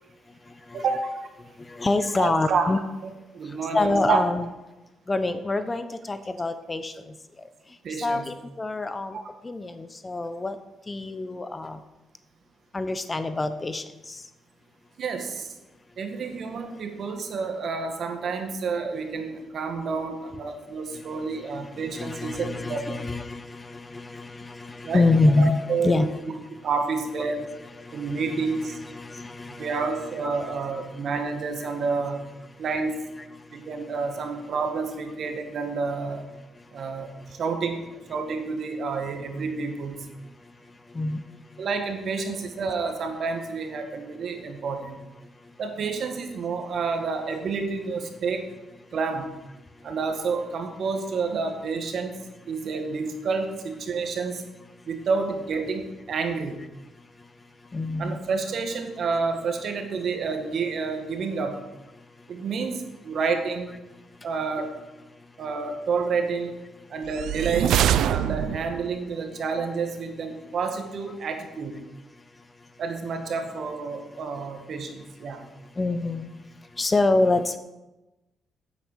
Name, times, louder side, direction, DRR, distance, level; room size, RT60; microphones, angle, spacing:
voice 1, 0.7-1.1 2.2-2.7 3.3-4.2 7.8-8.2 9.1-9.2 15.0-15.5 16.0-23.0 24.8-26.0 26.6-27.5 27.9-28.8 29.6-32.2 32.6-33.0 33.5-36.2 36.7-40.1 41.6-45.0 45.6-48.4 48.9-49.3 49.8-52.2 52.5-54.4 54.9-56.6 58.0-61.6 62.3-63.7 64.2-64.7 65.4-66.5 66.9-67.8 68.1-71.8 72.8-75.4, right 4 dB, 60° right, 5 dB, 1.9 m, -29 dB
voice 2, 1.7-2.8 3.7-4.5 5.1-6.9 8.0-9.2 9.4-10.6 10.9-11.8 12.7-13.8 21.9-25.5 25.8-26.1 28.3-29.9 30.2-30.4 40.9-41.2 57.7-58.2 68.5-68.6 75.8-76.3 76.8-77.6, left 2 dB, 25° left, 10 dB, 0.9 m, -26 dB
sound 1, 67.1-68.9, right 10 dB, 80° right, 0.5 m, -24 dB
9.2 x 8.4 x 6.8 m, 1.0 s
cardioid pair, 90°, 0 cm